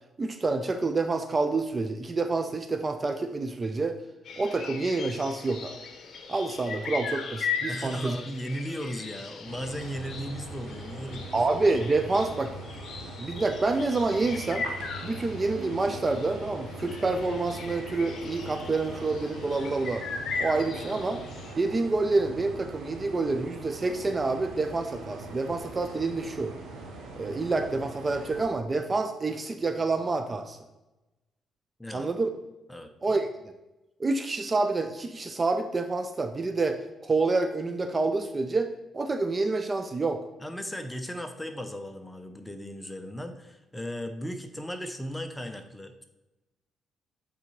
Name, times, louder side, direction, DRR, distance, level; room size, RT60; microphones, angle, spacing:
voice 1, 0.2-4.0 4.4-5.8 6.3-8.2 11.3-12.5 13.2-14.7 15.0-20.0 20.4-21.2 21.6-26.5 27.2-30.6 31.9-32.3 33.0-33.3 34.0-40.2, right 3 dB, 30° right, 7 dB, 0.5 m, -28 dB
sound 1, 4.3-21.5, left 5 dB, 60° left, 0.9 m, -38 dB
voice 2, 7.7-11.4 31.8-32.1 32.7-33.2 40.4-46.0, equal, 10° left, 6 dB, 0.7 m, -36 dB
sound 2, 9.4-28.4, right 2 dB, 85° right, 1.2 m, -42 dB
8.2 x 4.0 x 3.1 m, 1.0 s
cardioid pair, 90°, 0 cm